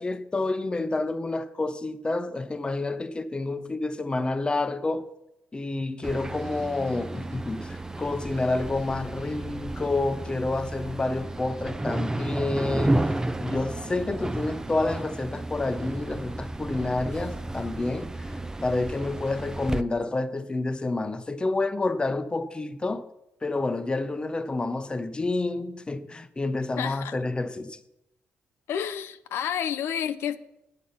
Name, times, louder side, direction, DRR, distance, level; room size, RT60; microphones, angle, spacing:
voice 1, 0.0-5.1 5.5-13.1 13.4-18.3 18.6-23.1 23.4-27.8, left 2 dB, 20° left, 0.7 m, -29 dB
sound 1, 6.0-19.8, right 2 dB, 15° right, 0.5 m, -32 dB
voice 2, 26.8-27.2 28.7-30.4, left 9 dB, 75° left, 0.5 m, -30 dB
9.2 x 8.6 x 5.5 m
cardioid pair, 80°, 4 cm